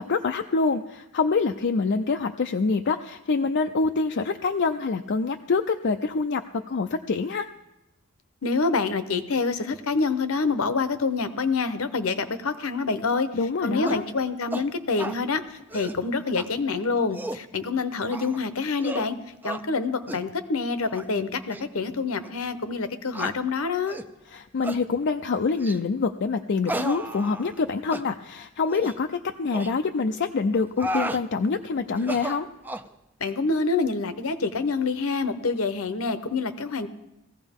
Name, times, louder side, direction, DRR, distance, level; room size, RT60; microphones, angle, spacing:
voice 1, 0.0-7.5 13.3-14.0 24.3-32.5, left 4 dB, 50° left, 6 dB, 0.5 m, -26 dB
voice 2, 8.4-13.3 13.6-19.2 19.4-24.0 33.2-36.9, left 4 dB, 65° left, 11 dB, 0.9 m, -26 dB
sound 1, 13.9-14.1 14.5-14.7 15.0-15.2 15.6-16.0 16.4-16.5 17.0-17.5 18.1-18.4 18.8-19.1 19.4-19.6 20.1-20.3 20.8-21.1 21.5-21.6 22.2-22.3 23.1-23.4 23.9-24.1 24.6-24.8 25.6-25.9 26.7-27.6 27.9-28.1 28.7-29.0 29.5-29.7 30.5-31.2 32.0-32.9, right 1 dB, 10° right, 0.4 m, -33 dB
18.5 x 15.0 x 3.6 m, 0.93 s
head